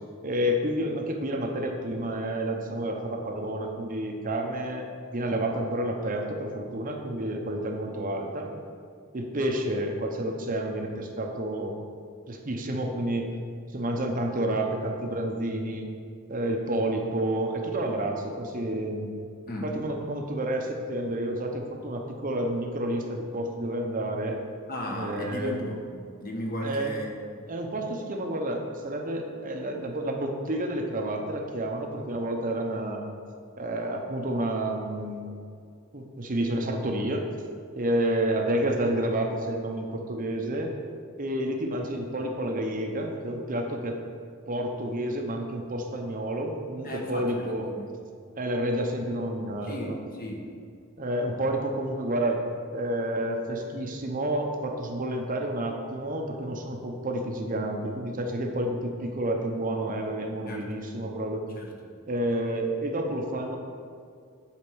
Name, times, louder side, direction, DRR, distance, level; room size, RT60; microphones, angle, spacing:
voice 1, 0.2-8.5 9.1-11.8 12.3-13.3 13.7-15.9 16.3-19.1 19.6-24.4 25.0-25.6 26.6-26.9 27.5-33.0 33.6-35.4 35.9-37.2 37.7-40.7 41.2-44.0 44.5-47.7 48.3-49.9 51.0-52.4 52.7-61.5 62.1-63.6, right 1 dB, 35° right, 2 dB, 0.8 m, -30 dB
voice 2, 19.5-19.8 24.7-25.9 26.2-27.4 46.8-47.9 49.6-50.5 60.5-60.6 61.6-61.7, equal, 40° left, 0 dB, 1.2 m, -35 dB
8.6 x 4.3 x 6.2 m, 2.3 s
head